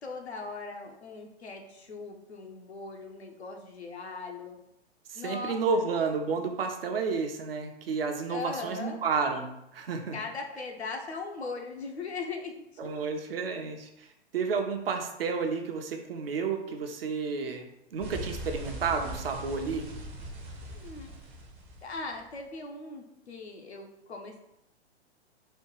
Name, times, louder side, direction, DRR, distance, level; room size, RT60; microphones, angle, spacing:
voice 1, 0.0-4.6 5.1-5.8 8.3-9.0 10.1-12.5 20.7-21.1 21.8-24.4, left 3 dB, 75° left, 2 dB, 0.9 m, -39 dB
voice 2, 5.1-10.2 12.8-14.1 14.3-19.9, right 5 dB, 60° right, 5 dB, 0.8 m, -31 dB
sound 1, 18.0-22.4, right 1 dB, 20° right, 0.6 m, -41 dB
4.3 x 2.3 x 4.6 m, 0.82 s
figure-of-eight pair, 110°, 33 cm